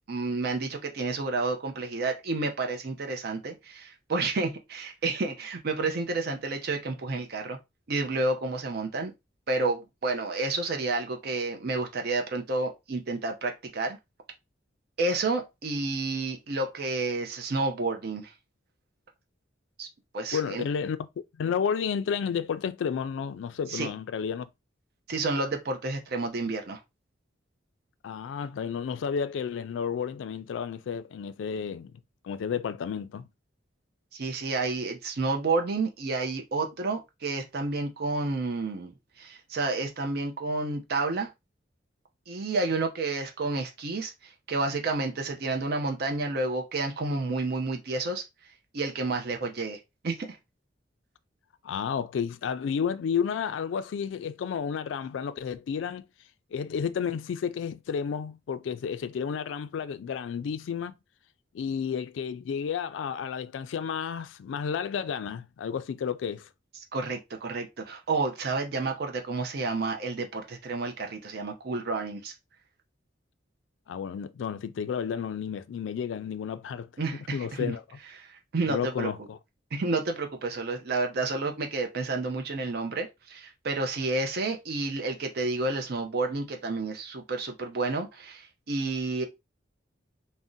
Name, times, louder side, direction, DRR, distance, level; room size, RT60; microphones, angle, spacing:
voice 1, 0.0-7.6 7.9-9.1 9.5-14.0 15.0-18.3 19.8-19.9 20.1-20.7 23.7-23.9 25.1-26.8 34.1-38.9 39.2-41.3 42.3-44.1 44.5-48.2 48.7-49.8 50.0-50.4 66.9-72.3 77.0-77.7 78.3-79.1 79.7-89.2, right 3 dB, 55° right, 0.5 m, -30 dB
voice 2, 20.3-21.1 21.4-24.5 28.0-31.9 32.2-33.3 51.6-56.0 56.5-60.9 61.5-66.5 73.9-77.8 78.7-79.4, left 7 dB, 75° left, 0.3 m, -31 dB
2.6 x 2.1 x 3.6 m
head